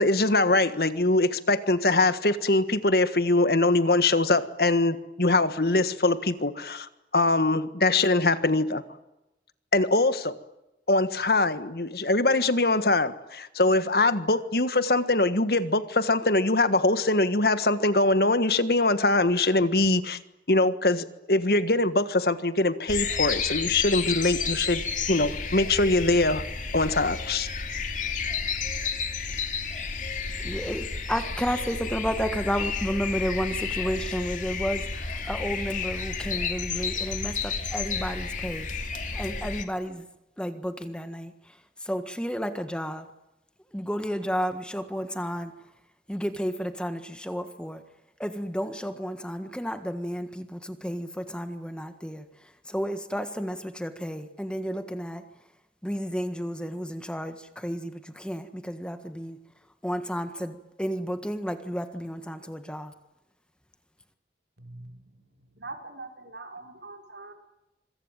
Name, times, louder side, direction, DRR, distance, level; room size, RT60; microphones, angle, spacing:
voice 1, 0.0-8.8 9.7-10.4 10.9-20.2 20.5-24.8 25.1-26.4 26.7-27.5, left 2 dB, 60° left, 12 dB, 1.6 m, -23 dB
sound 1, 22.9-39.6, left 5 dB, 45° left, 2.7 m, -31 dB
voice 2, 30.4-38.7 39.1-40.1 40.4-43.1 43.7-45.5 46.1-47.8 48.2-55.2 55.8-59.4 59.8-62.9, equal, 5° left, 9 dB, 1.6 m, -32 dB
voice 3, 64.6-67.3, right 3 dB, 80° right, 4 dB, 5.2 m, -43 dB
26.0 x 23.5 x 9.1 m, 0.94 s
head